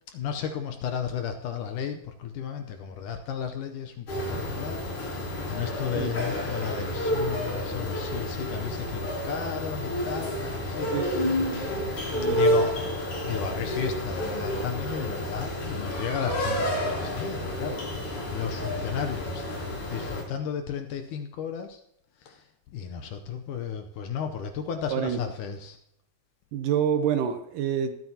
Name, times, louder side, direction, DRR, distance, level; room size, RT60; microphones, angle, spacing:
voice 1, 0.1-11.3 12.3-12.7 13.0-19.4 19.9-21.8 22.3-22.4 22.7-25.8, left 7 dB, 75° left, 6 dB, 2.0 m, -34 dB
sound 1, 4.1-20.2, left 1 dB, 55° left, 6.3 m, -30 dB
voice 2, 10.9-11.6 12.1-12.6 24.9-25.2 26.5-27.9, right 8 dB, 75° right, 8 dB, 2.1 m, -28 dB
22.0 x 9.1 x 2.8 m, 0.78 s
omnidirectional pair, 4.3 m